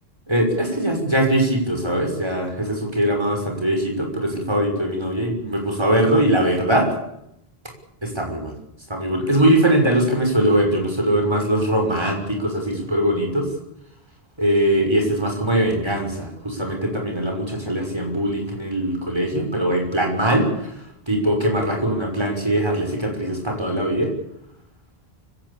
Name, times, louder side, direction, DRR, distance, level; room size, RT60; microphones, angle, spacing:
voice 1, 0.3-6.9 8.0-8.6 8.9-13.5 14.4-20.7 21.1-24.1, right 1 dB, 25° right, 2 dB, 6.1 m, -21 dB
24.5 x 17.0 x 8.8 m, 0.81 s
omnidirectional pair, 1.1 m